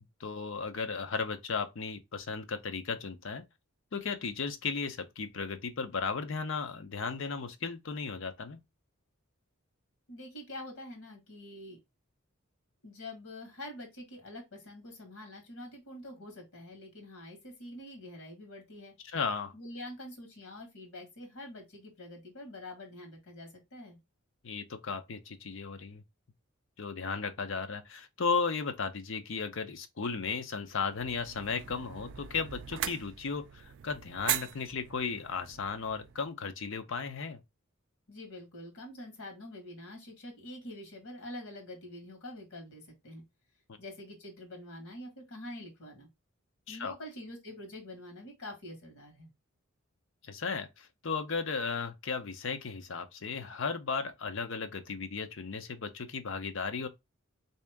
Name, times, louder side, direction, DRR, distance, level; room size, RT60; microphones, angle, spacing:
voice 1, 0.2-3.4 3.9-8.6 19.0-19.5 24.4-26.0 26.8-37.4 46.7-46.9 50.2-56.9, left 5 dB, 60° left, 0.6 m, -35 dB
voice 2, 10.1-11.8 12.8-18.9 19.5-24.0 38.1-43.2 43.8-46.1 46.7-49.3, left 1 dB, 90° left, 1.5 m, -46 dB
sound 1, 30.9-36.3, right 11 dB, 60° right, 0.3 m, -40 dB
3.5 x 2.8 x 3.4 m
head